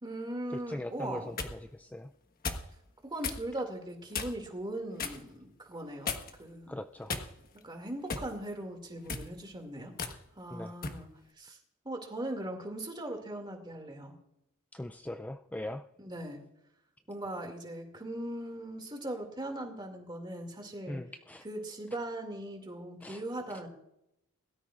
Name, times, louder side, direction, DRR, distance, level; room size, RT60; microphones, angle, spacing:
voice 1, 0.0-1.4 3.0-6.1 6.4-6.8 7.6-9.9 10.3-11.6 11.8-14.1 16.0-16.4 17.1-21.0 21.4-23.7, right 1 dB, 20° right, 4 dB, 2.4 m, -39 dB
voice 2, 0.5-2.1 6.7-7.1 10.5-10.8 14.7-15.9 20.9-21.4 23.0-23.2, left 1 dB, 5° left, 7 dB, 0.3 m, -40 dB
sound 1, 1.0-1.6 2.4-2.7 3.2-3.4 4.1-4.5 5.0-5.2 6.1-6.5 7.1-7.6 8.1-8.3 9.0-9.3 10.0-10.2 10.8-11.0, left 4 dB, 45° left, 1.3 m, -36 dB
21.5 x 13.0 x 2.5 m, 0.82 s
head